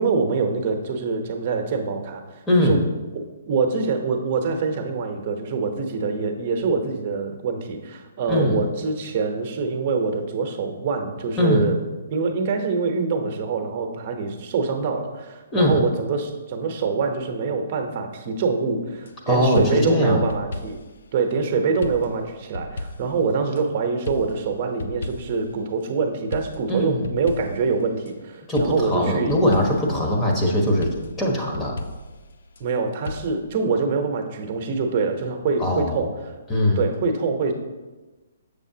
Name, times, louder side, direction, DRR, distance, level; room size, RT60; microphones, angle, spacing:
voice 1, 0.0-2.8 3.5-11.8 12.1-20.8 21.1-29.4 32.6-36.1 36.8-37.5, right 4 dB, 40° right, 4 dB, 0.9 m, -25 dB
voice 2, 2.5-2.8 8.3-8.6 11.4-11.7 15.5-15.8 19.3-20.2 26.7-27.1 28.5-30.9 31.2-31.8 35.6-36.1 36.5-36.8, left 1 dB, 15° left, -2 dB, 1.2 m, -21 dB
sound 1, 19.0-19.2 19.5-21.0 21.8-23.6 24.0-25.5 26.3-28.1 28.5-30.0 30.8-32.7 33.0-33.3, left 2 dB, 70° left, 0.5 m, -35 dB
6.9 x 6.8 x 2.8 m, 1.2 s
hypercardioid pair, 140°, 0 cm